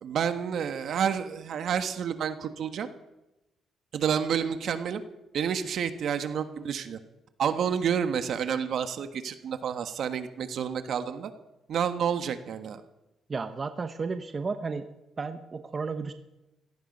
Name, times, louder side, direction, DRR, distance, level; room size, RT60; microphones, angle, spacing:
voice 1, 0.0-2.9 3.9-5.0 5.3-7.0 7.4-11.3 11.7-12.8, right 8 dB, 65° right, 9 dB, 1.5 m, -29 dB
voice 2, 13.3-14.9 15.2-16.1, right 4 dB, 35° right, 9 dB, 1.0 m, -33 dB
17.5 x 14.5 x 5.4 m, 0.94 s
cardioid pair, 90°, 0 cm